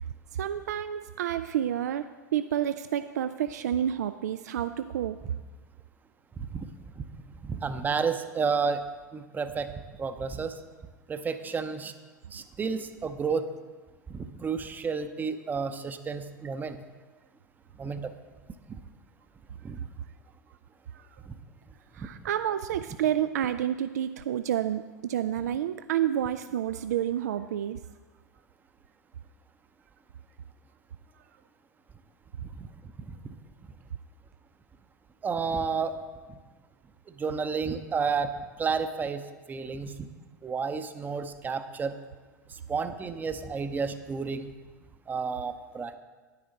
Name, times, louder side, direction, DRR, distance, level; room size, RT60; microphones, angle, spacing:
voice 1, 0.3-5.2 20.9-21.1 21.9-27.8, right 10 dB, 65° right, 11 dB, 0.4 m, -29 dB
voice 2, 7.4-8.8 9.1-9.7 10.0-10.5 11.1-11.9 12.3-13.5 14.1-16.8 17.8-18.1 18.7-18.8 19.6-19.8 35.2-36.0 37.2-38.3 38.6-39.2 39.5-39.9 40.4-41.9 42.7-44.5 45.1-46.0, right 5 dB, 20° right, 10 dB, 0.7 m, -31 dB
10.5 x 10.0 x 4.0 m, 1.4 s
figure-of-eight pair, 85°, 10 cm